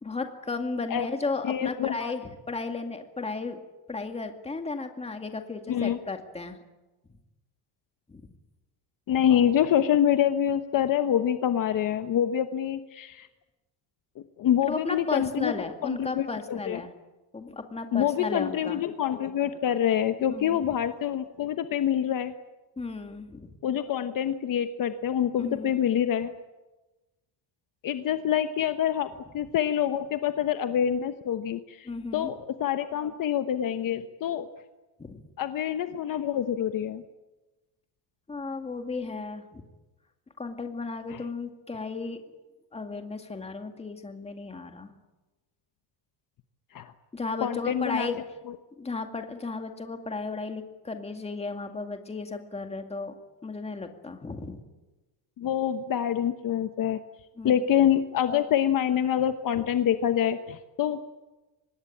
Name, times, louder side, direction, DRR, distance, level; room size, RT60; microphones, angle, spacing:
voice 1, 0.0-3.6 3.9-6.6 8.1-8.3 14.6-16.9 17.3-18.8 20.3-20.6 22.8-23.5 25.4-25.7 31.8-32.3 35.0-35.2 38.3-39.6 40.4-42.2 42.7-44.9 47.1-48.2 48.8-53.1 53.4-54.6 57.4-57.6 59.6-59.7, left 3 dB, 15° left, 5 dB, 2.2 m, -34 dB
voice 2, 1.4-2.1 5.7-6.0 9.1-13.3 14.4-15.5 15.8-16.8 17.9-22.3 23.6-26.3 27.8-29.1 29.3-31.9 32.1-34.5 35.4-37.0 41.1-41.2 46.7-46.9 47.4-48.1 55.4-57.0 57.4-61.0, left 10 dB, 45° left, 9 dB, 1.1 m, -26 dB
25.0 x 20.0 x 8.7 m, 1.1 s
cardioid pair, 160°, 45 cm